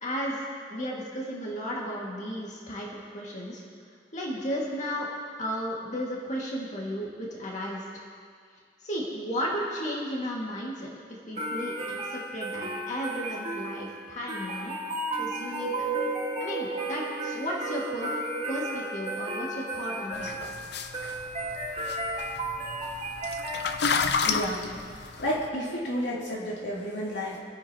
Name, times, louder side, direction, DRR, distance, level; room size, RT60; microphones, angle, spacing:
voice 1, 0.0-0.4 0.7-3.6 4.1-5.1 5.4-7.8 8.8-14.8 15.2-15.9 16.4-18.2 18.5-20.4, equal, 40° left, -4 dB, 2.1 m, -34 dB
sound 1, 11.4-24.2, right 1 dB, 35° right, 2.6 m, -35 dB
sound 2, 15.4-20.0, right 4 dB, 75° right, 2.5 m, -35 dB
sound 3, 20.1-25.5, left 5 dB, 65° left, 0.7 m, -31 dB
voice 2, 24.2-24.7 25.2-27.4, equal, 80° left, -5 dB, 2.8 m, -31 dB
26.0 x 10.0 x 2.9 m, 2.1 s
head